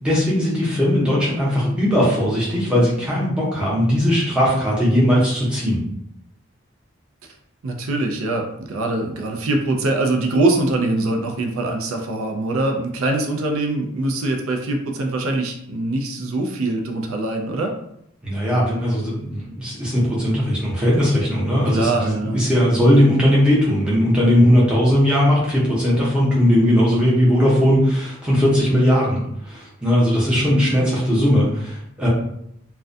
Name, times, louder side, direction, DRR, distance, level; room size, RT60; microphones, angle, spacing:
voice 1, 0.0-5.8 18.2-29.2 29.5-32.1, equal, 5° right, -7 dB, 0.7 m, -18 dB
voice 2, 7.6-17.7 21.6-22.4, right 2 dB, 80° right, 2 dB, 0.4 m, -23 dB
2.3 x 2.1 x 2.5 m, 0.74 s
head